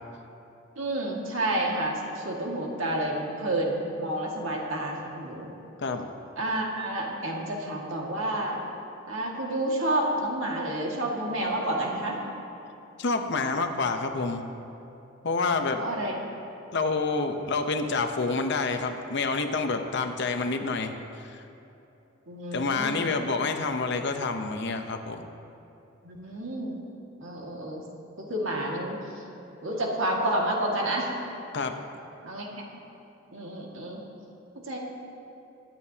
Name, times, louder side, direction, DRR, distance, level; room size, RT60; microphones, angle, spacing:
voice 1, 0.8-5.5 6.4-8.6 9.1-12.2 15.8-16.1 22.3-23.1 26.0-26.8 27.2-27.8 28.3-29.0 29.6-31.1 32.2-32.6 33.3-34.0 34.7-34.8, right 1 dB, 85° right, -2 dB, 2.0 m, -29 dB
voice 2, 13.0-14.5 15.2-15.8 16.7-20.9 21.3-21.4 22.5-25.3 31.5-31.7, left 3 dB, 60° left, 6 dB, 0.8 m, -28 dB
22.5 x 8.9 x 2.8 m, 2.9 s
head